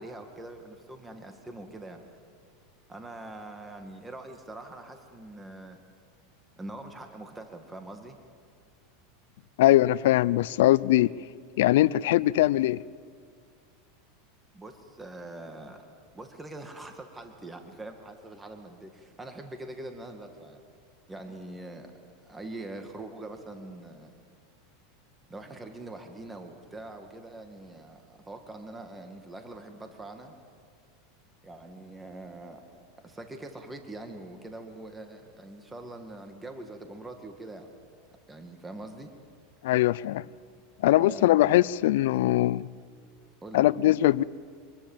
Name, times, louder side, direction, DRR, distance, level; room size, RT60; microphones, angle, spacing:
voice 1, 0.0-2.0 2.9-5.8 6.6-8.2 14.5-15.8 16.1-20.6 21.1-21.9 22.2-24.1 25.3-30.3 31.4-32.6 33.0-37.7 38.3-39.1 41.0-41.6 43.4-43.7, right 2 dB, 10° right, 2.1 m, -43 dB
voice 2, 9.6-11.1 11.6-12.8 39.6-40.2 40.8-42.7 43.5-44.2, left 15 dB, 75° left, 0.5 m, -21 dB
25.5 x 21.5 x 7.4 m
supercardioid pair, 130°, 0 cm